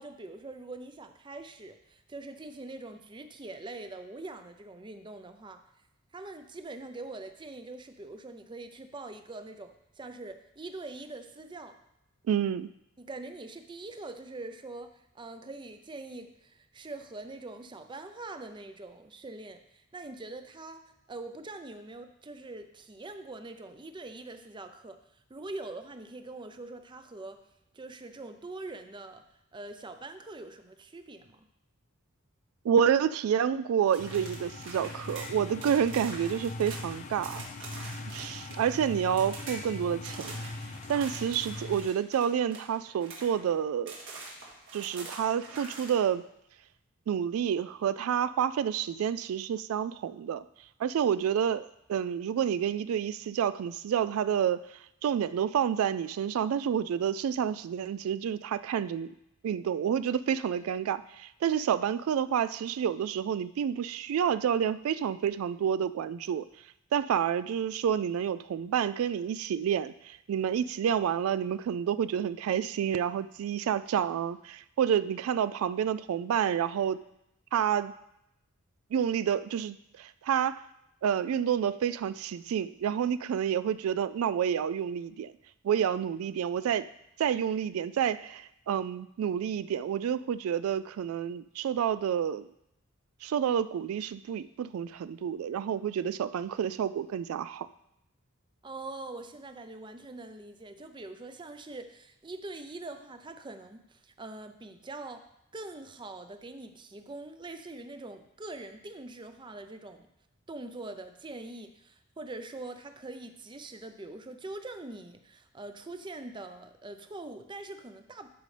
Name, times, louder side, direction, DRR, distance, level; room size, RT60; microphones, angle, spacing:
voice 1, 0.0-5.6 6.1-11.8 13.0-27.4 27.7-29.2 29.5-31.4 98.6-105.2 105.5-110.1 110.5-118.3, right 2 dB, 25° right, 8 dB, 0.5 m, -43 dB
voice 2, 12.3-12.7 32.6-37.4 38.1-40.3 40.9-43.9 44.7-46.2 47.1-50.4 50.8-54.6 55.0-59.1 59.4-66.4 66.9-77.0 77.5-77.9 78.9-80.6 81.0-85.3 85.6-86.9 87.2-92.5 93.2-97.7, right 8 dB, 90° right, 15 dB, 0.3 m, -29 dB
sound 1, 33.9-38.8 39.1-39.6 40.0-43.5 43.9-45.9, right 3 dB, 65° right, 1.9 m, -45 dB
sound 2, 34.0-41.9, left 2 dB, 35° left, 0.4 m, -41 dB
12.5 x 5.3 x 3.3 m, 0.81 s
head